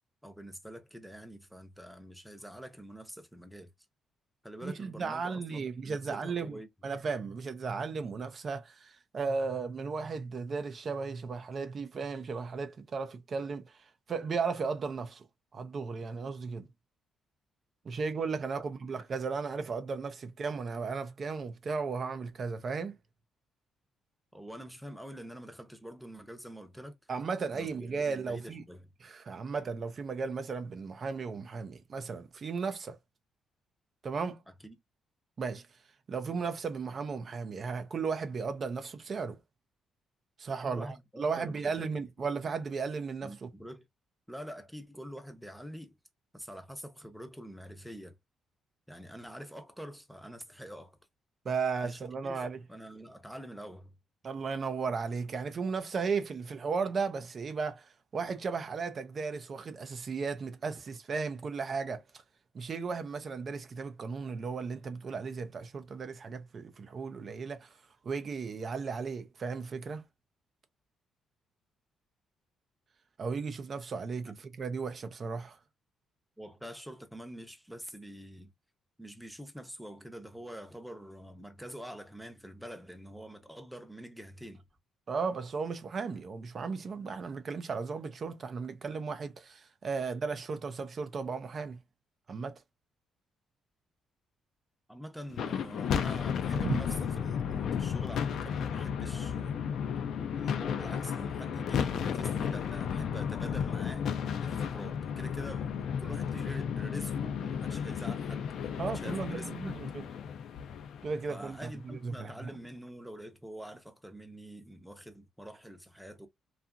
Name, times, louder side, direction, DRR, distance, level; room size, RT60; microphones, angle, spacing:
voice 1, 0.2-3.7 4.4-6.7 24.3-27.0 27.5-28.9 34.6-34.8 40.6-41.8 43.2-43.8 44.3-46.0 46.3-48.1 48.9-51.0 51.8-54.0 76.4-78.5 79.0-84.6 94.9-99.7 100.3-104.1 104.4-108.5 108.9-109.8 111.3-116.3, equal, ahead, 0.6 m, -46 dB
voice 2, 4.6-15.2 15.5-16.7 17.8-23.0 27.1-28.6 29.0-33.0 34.0-34.4 35.4-35.7 36.1-39.4 40.4-43.5 51.4-52.6 54.2-62.0 62.5-67.8 68.0-70.0 73.2-75.6 85.1-91.8 92.3-92.5 96.6-96.8 108.8-110.1 111.0-112.6, right 5 dB, 45° right, 0.4 m, -35 dB
sound 1, 95.3-111.7, left 7 dB, 70° left, 0.4 m, -33 dB
2.7 x 2.4 x 2.4 m
cardioid pair, 90°, 0 cm